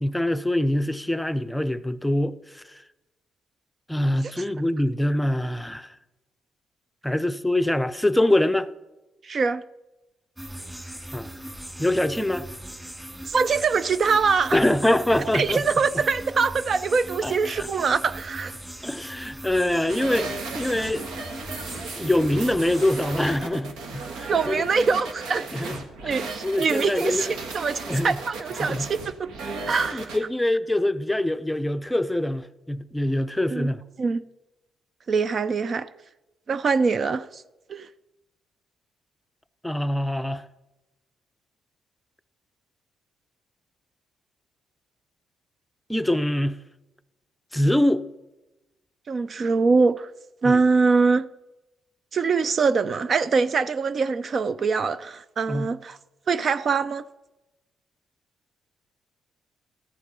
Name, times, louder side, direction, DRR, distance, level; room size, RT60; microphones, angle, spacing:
voice 1, 0.0-2.8 3.9-5.9 7.0-8.7 11.1-11.3 11.8-12.5 14.5-15.6 17.2-17.9 18.8-20.3 20.5-21.0 22.0-24.9 25.5-25.8 26.0-26.2 26.4-27.3 27.9-28.2 28.7-28.9 29.9-33.8 39.6-40.4 45.9-46.6 47.5-48.1 50.4-50.6 55.5-55.7, left 1 dB, 5° left, 0.6 m, -24 dB
voice 2, 9.2-9.6 13.3-14.6 15.2-18.6 24.3-25.5 26.0-29.3 29.7-30.1 33.5-33.7 34.0-34.2 35.1-35.9 36.5-37.4 37.7-37.9 49.1-50.1 50.4-51.3 52.1-56.0 56.3-57.0, right 4 dB, 45° right, 0.4 m, -23 dB
sound 1, 10.4-23.4, right 1 dB, 10° right, 2.6 m, -39 dB
sound 2, 19.9-30.2, right 3 dB, 90° right, 1.6 m, -35 dB
13.5 x 8.4 x 5.3 m
cardioid pair, 90°, 0 cm